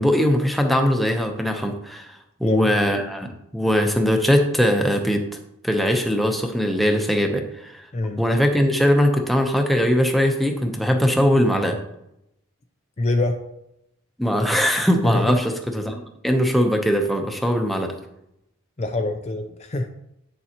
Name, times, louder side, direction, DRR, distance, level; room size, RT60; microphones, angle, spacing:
voice 1, 0.0-2.1 2.4-3.3 3.5-5.2 5.6-7.8 8.2-11.8 14.2-17.9, equal, ahead, 3 dB, 0.8 m, -20 dB
voice 2, 2.4-2.8 7.9-8.3 13.0-13.4 15.0-15.4 18.8-19.9, left 2 dB, 30° left, 5 dB, 0.5 m, -24 dB
9.4 x 6.9 x 2.9 m, 0.82 s
head